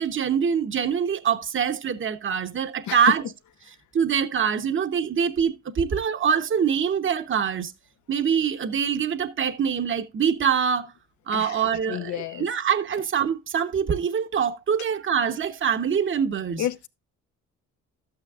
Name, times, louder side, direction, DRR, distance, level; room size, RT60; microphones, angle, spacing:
voice 1, 0.0-3.2 3.9-7.7 8.1-10.9 11.3-16.6, right 7 dB, 40° right, 1.0 m, -24 dB
voice 2, 2.9-3.2 11.3-12.5 16.6-16.9, left 11 dB, 70° left, 0.8 m, -30 dB
12.5 x 8.9 x 2.4 m
cardioid pair, 90°, 30 cm